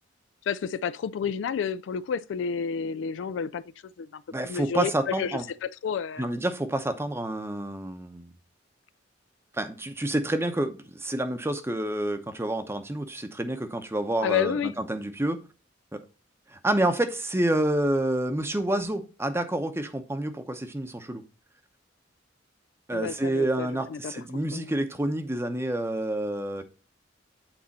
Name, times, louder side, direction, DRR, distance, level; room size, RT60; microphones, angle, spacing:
voice 1, 0.5-3.6 4.0-6.3 14.2-14.7 22.9-24.1 24.5-24.7, left 7 dB, 70° left, 0.3 m, -30 dB
voice 2, 4.3-5.4 6.2-8.3 9.5-15.4 15.9-16.0 16.5-21.2 22.9-26.6, right 1 dB, 15° right, 0.7 m, -28 dB
8.8 x 4.1 x 4.1 m
head